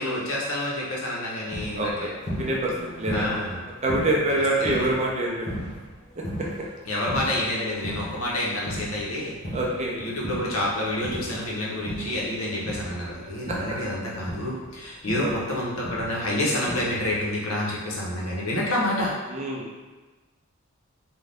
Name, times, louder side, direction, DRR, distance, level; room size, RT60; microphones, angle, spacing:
voice 1, 0.0-2.1 3.1-3.6 4.6-4.7 6.9-9.3 10.0-19.1, left 1 dB, 85° left, -4 dB, 0.8 m, -28 dB
sound 1, 1.5-8.3 8.6-13.1 13.4-17.1, equal, 35° left, 0.6 m, -36 dB
voice 2, 1.8-2.7 3.0-3.4 3.8-5.5 9.5-9.9 15.2-15.5 19.3-19.6, right 1 dB, 30° right, -3 dB, 0.5 m, -26 dB
2.6 x 2.2 x 3.3 m, 1.2 s
head